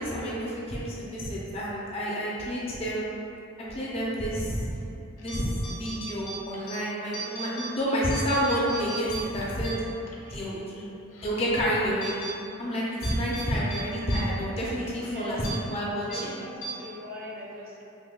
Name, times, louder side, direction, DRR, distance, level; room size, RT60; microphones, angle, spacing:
voice 1, 0.0-3.2 3.7-4.7 5.2-9.8 10.3-10.9 11.2-12.1 12.6-16.3, equal, 30° left, -6 dB, 0.5 m, -29 dB
sound 1, 5.2-5.4 5.6-6.8 7.1-7.7 8.0-10.2 10.6-10.7 11.1-11.5 12.0-12.3 13.0-13.5 13.7-13.8 14.1-14.2 14.5-14.7 15.4-15.6 16.1-16.2 16.6-16.7, right 3 dB, 85° left, 0.5 m, -37 dB
voice 2, 10.2-10.8 15.1-15.5 16.1-17.9, left 1 dB, 45° right, -3 dB, 0.4 m, -41 dB
5.3 x 2.2 x 2.3 m, 2.7 s
head